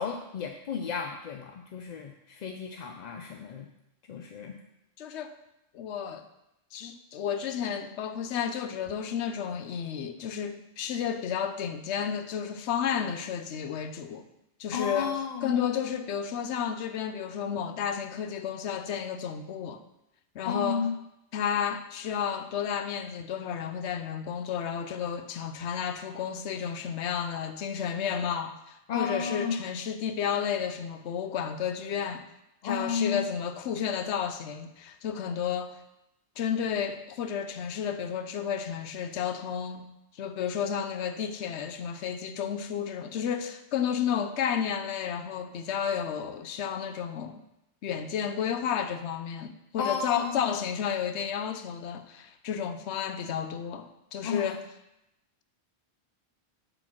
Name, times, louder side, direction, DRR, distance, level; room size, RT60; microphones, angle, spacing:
voice 1, 0.0-3.7 4.1-4.6 14.7-15.5 20.4-20.9 28.9-29.6 32.6-33.2 49.8-50.5 54.2-54.5, left 6 dB, 55° left, 0.5 m, -33 dB
voice 2, 5.0-5.4 5.7-6.3 6.7-14.3 14.6-19.8 20.3-20.9 21.3-32.3 32.6-35.8 36.4-39.9 40.1-47.4 47.8-54.6, left 8 dB, 90° left, 0.9 m, -32 dB
6.8 x 4.0 x 5.9 m
omnidirectional pair, 1.1 m